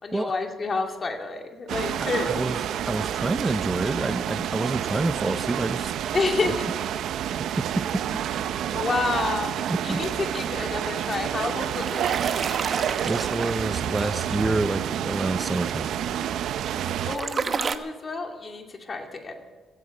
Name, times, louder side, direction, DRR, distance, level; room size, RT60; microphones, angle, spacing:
voice 1, 0.0-2.6 6.1-6.7 8.7-12.6 17.0-19.4, left 3 dB, 40° left, 3 dB, 2.5 m, -30 dB
sound 1, 1.7-17.2, right 10 dB, 80° right, 0.7 m, -29 dB
voice 2, 2.0-5.9 7.6-8.0 9.7-10.0 13.1-15.9, right 2 dB, 20° right, 12 dB, 0.5 m, -28 dB
sound 2, 11.4-13.9 16.5-17.8, right 5 dB, 45° right, 1.0 m, -30 dB
16.0 x 15.5 x 5.4 m, 1.5 s
cardioid pair, 90°, 0 cm